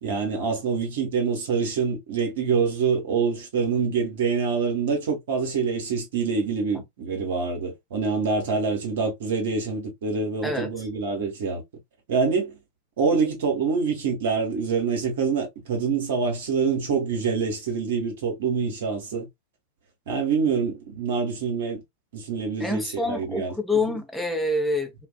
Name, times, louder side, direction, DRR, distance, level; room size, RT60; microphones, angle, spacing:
voice 1, 0.0-11.6 12.1-12.6 13.0-19.3 20.1-21.8 22.1-23.5 23.9-24.0, right 5 dB, 60° right, 1.1 m, -26 dB
voice 2, 22.6-25.1, left 2 dB, 5° left, 0.7 m, -27 dB
2.4 x 2.3 x 2.2 m
figure-of-eight pair, 90°, 0 cm